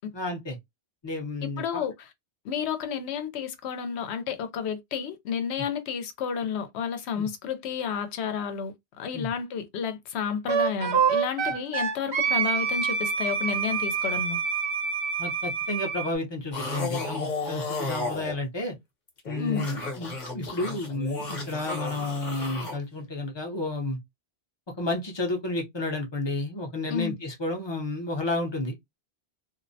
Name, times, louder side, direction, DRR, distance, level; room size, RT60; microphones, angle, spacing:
voice 1, 0.1-0.6 1.0-1.8 7.2-7.3 9.1-9.3 15.2-18.7 19.3-24.0 24.8-29.0, left 2 dB, 30° left, 0.5 m, -31 dB
voice 2, 1.6-2.1 2.4-14.4 19.4-19.7 26.9-27.1, left 7 dB, 80° left, 0.8 m, -31 dB
Wind instrument woodwind instrument, 10.5-16.1, right 6 dB, 75° right, 1.0 m, -26 dB
sound 1, 16.5-18.3 19.1-22.8, left 3 dB, 45° left, 0.9 m, -33 dB
2.4 x 2.0 x 2.6 m
omnidirectional pair, 1.1 m